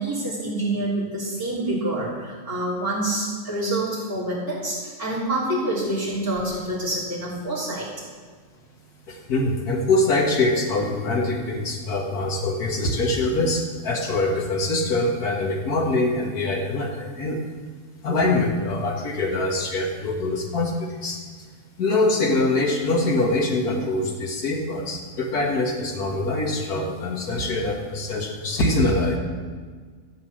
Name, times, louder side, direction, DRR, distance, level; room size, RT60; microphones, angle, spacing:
voice 1, 0.0-7.9, right 1 dB, 15° right, -10 dB, 3.6 m, -27 dB
voice 2, 9.1-17.4 18.0-21.2 21.8-29.2, left 2 dB, 90° left, 0 dB, 2.1 m, -24 dB
13.0 x 7.9 x 7.7 m, 1.5 s
omnidirectional pair, 1.6 m